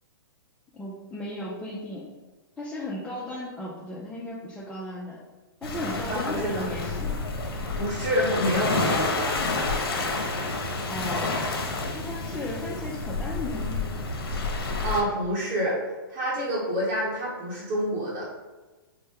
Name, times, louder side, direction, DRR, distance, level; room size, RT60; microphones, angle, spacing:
voice 1, 0.7-2.1 2.6-5.2 5.6-7.2 10.9-11.5 11.9-13.8, left 1 dB, 5° left, -6 dB, 0.4 m, -35 dB
Waves surf, 5.6-15.0, left 3 dB, 80° left, 0.7 m, -29 dB
voice 2, 5.9-6.7 7.8-9.4 14.8-15.8 16.1-18.3, equal, 35° right, -7 dB, 0.9 m, -27 dB
4.2 x 2.1 x 3.5 m, 1.2 s
hypercardioid pair, 140°, 13 cm